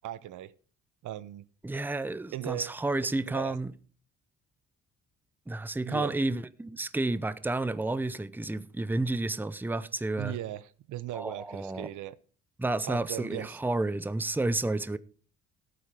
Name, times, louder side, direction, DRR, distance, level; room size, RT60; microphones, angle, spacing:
voice 1, 0.0-0.5 1.0-1.5 2.3-2.8 3.3-3.6 5.8-6.1 10.2-12.2 12.8-13.6, right 13 dB, 80° right, 0.8 m, -38 dB
voice 2, 1.6-3.7 5.5-10.4 11.1-11.9 12.6-15.0, right 2 dB, 5° right, 0.7 m, -31 dB
13.5 x 8.7 x 4.9 m
cardioid pair, 90°, 30 cm